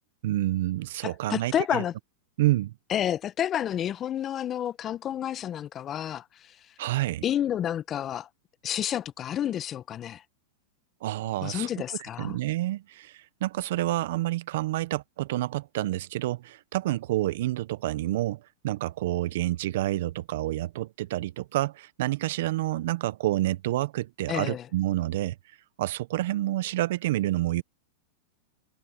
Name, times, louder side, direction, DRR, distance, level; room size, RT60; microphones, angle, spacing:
voice 1, 0.2-1.8 2.4-2.7 6.8-7.2 11.0-11.7 12.2-25.3 25.8-27.6, right 16 dB, 65° right, 1.2 m, -28 dB
voice 2, 1.0-1.9 2.9-6.6 7.2-8.3 8.6-10.2 11.4-12.4 24.3-24.7, left 10 dB, 30° left, 1.0 m, -30 dB
hypercardioid pair, 115°, 0 cm